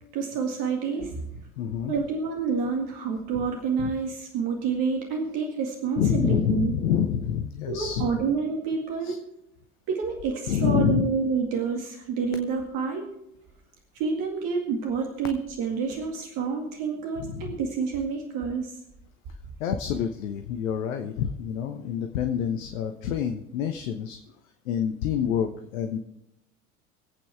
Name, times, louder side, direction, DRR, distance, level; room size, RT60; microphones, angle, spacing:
voice 1, 0.1-1.2 1.9-6.7 7.7-9.2 9.9-13.1 13.9-18.8, right 5 dB, 45° right, 2 dB, 2.1 m, -28 dB
voice 2, 1.6-1.9 3.8-3.9 6.0-8.1 9.0-9.2 10.5-11.1 17.2-17.6 19.6-24.2 24.7-26.0, left 8 dB, 60° left, 7 dB, 1.1 m, -27 dB
25.0 x 8.7 x 3.5 m, 0.85 s
figure-of-eight pair, 70°, 44 cm